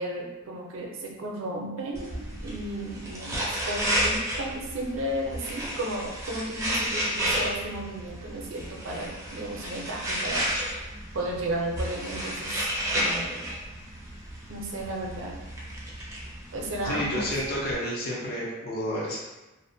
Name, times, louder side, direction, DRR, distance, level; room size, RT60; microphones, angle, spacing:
voice 1, 0.0-10.8 11.1-12.7 12.9-13.6 14.5-15.4 16.5-17.3, right 1 dB, 70° right, -1 dB, 0.5 m, -34 dB
sound 1, 1.9-17.7, equal, 15° right, 0.4 m, -32 dB
voice 2, 16.8-19.2, equal, 50° left, -5 dB, 0.5 m, -30 dB
2.5 x 2.1 x 2.6 m, 1.1 s
head